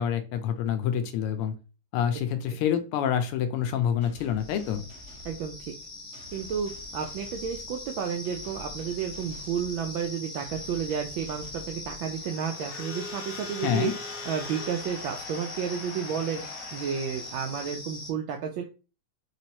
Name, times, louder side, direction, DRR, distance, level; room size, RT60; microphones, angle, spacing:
voice 1, 0.0-1.5 1.9-4.8 13.6-14.0, left 9 dB, 85° left, 9 dB, 1.6 m, -27 dB
sound 1, 4.0-12.5, left 2 dB, 40° right, 1.1 m, -50 dB
sound 2, 4.4-18.1, left 2 dB, 45° left, 1.4 m, -41 dB
voice 2, 5.2-5.7 6.3-13.9 14.3-16.4 16.7-18.6, right 7 dB, 75° right, 3 dB, 1.2 m, -32 dB
Crowd / Alarm, 12.1-17.7, left 4 dB, 65° left, 1.3 m, -42 dB
4.2 x 3.1 x 2.8 m, 0.33 s
omnidirectional pair, 2.4 m